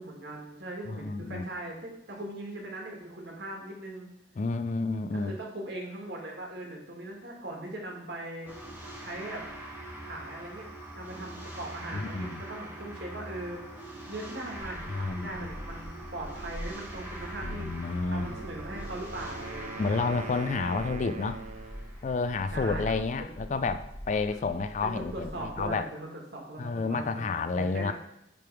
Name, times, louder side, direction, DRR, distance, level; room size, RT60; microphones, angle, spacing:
voice 1, 0.0-4.1 5.1-8.5 9.0-9.4 10.0-10.7 11.0-20.2 22.5-22.9 23.2-23.3 24.3-24.5 24.8-27.9, right 1 dB, 60° right, 0 dB, 1.8 m, -40 dB
voice 2, 0.9-1.5 4.4-5.4 11.9-12.4 14.9-15.5 17.4-18.4 19.8-21.4 22.0-25.3 25.6-25.8 26.6-27.9, left 4 dB, 40° left, 10 dB, 0.3 m, -30 dB
sound 1, 8.4-22.8, right 1 dB, 10° right, 1.3 m, -43 dB
Gull seagull, 14.6-25.8, equal, 10° left, 1.1 m, -44 dB
Wind instrument woodwind instrument, 18.2-22.0, right 3 dB, 35° right, 0.4 m, -43 dB
9.3 x 3.5 x 4.7 m, 0.82 s
head